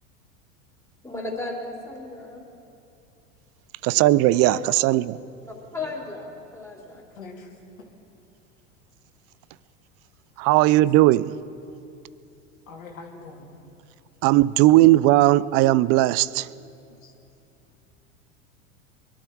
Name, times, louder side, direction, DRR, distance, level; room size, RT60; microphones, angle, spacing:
voice 1, 1.0-2.4 4.4-4.6 5.4-7.0, left 3 dB, 5° left, 3.7 m, -35 dB
voice 2, 3.8-5.2 10.4-11.3 14.2-16.5, right 16 dB, 40° right, 0.4 m, -18 dB
voice 3, 7.1-7.5 10.8-10.9 12.7-13.5 17.0-17.1, left 4 dB, 80° left, 2.7 m, -42 dB
22.0 x 12.5 x 4.7 m
hypercardioid pair, 90°, 40 cm